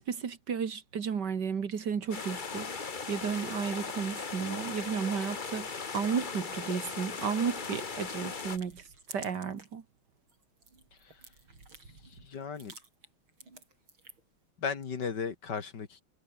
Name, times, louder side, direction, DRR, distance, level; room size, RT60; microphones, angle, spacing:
voice 1, 0.0-8.8 9.1-9.8, right 6 dB, 60° right, 2.3 m, -33 dB
sound 1, 2.1-8.6, left 5 dB, 30° left, 1.2 m, -38 dB
sound 2, 6.7-9.8 10.2-14.4, right 3 dB, 85° right, 6.6 m, -53 dB
voice 2, 12.0-12.7 14.6-16.0, left 6 dB, 60° left, 2.5 m, -36 dB
omnidirectional pair, 2.2 m